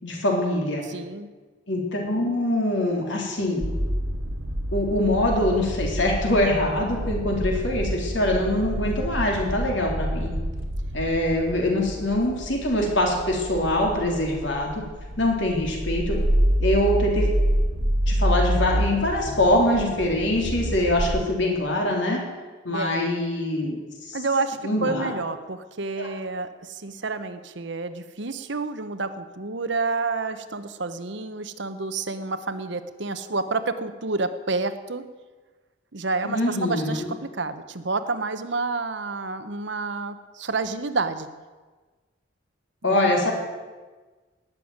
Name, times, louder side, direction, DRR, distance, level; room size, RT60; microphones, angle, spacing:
voice 1, 0.0-0.8 1.7-3.6 4.7-10.3 10.9-14.8 15.2-16.2 16.6-17.3 18.1-22.2 22.6-24.2 24.6-25.1 26.0-26.1 36.2-37.1 42.8-43.3, left 1 dB, 65° left, 0 dB, 3.7 m, -24 dB
voice 2, 0.9-1.3 22.7-23.1 24.1-35.0 35.9-41.3 42.8-43.3, right 3 dB, 60° right, 10 dB, 1.0 m, -29 dB
sound 1, 3.6-21.2, equal, 80° right, 2.1 m, -27 dB
18.5 x 7.1 x 9.5 m, 1.3 s
head